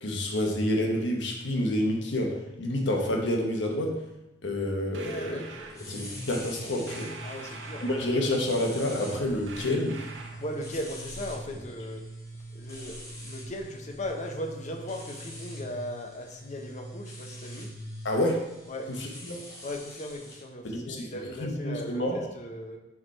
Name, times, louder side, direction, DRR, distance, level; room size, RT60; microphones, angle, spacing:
voice 1, 0.0-3.9 4.4-5.4 5.9-7.1 7.8-10.0 18.0-18.4 19.0-19.4 20.6-21.1 21.4-22.2, left 1 dB, 75° left, 1 dB, 1.0 m, -28 dB
sound 1, 4.9-5.8 6.9-8.4 9.5-10.5, right 3 dB, 85° right, 0.8 m, -44 dB
voice 2, 5.0-6.0 7.2-7.8 10.4-12.0 12.5-17.7 18.7-18.9 19.6-22.8, left 1 dB, 40° left, 3 dB, 0.7 m, -38 dB
sound 2, 5.7-20.4, equal, 20° left, 1.6 m, -43 dB
4.8 x 4.7 x 4.3 m, 0.94 s
head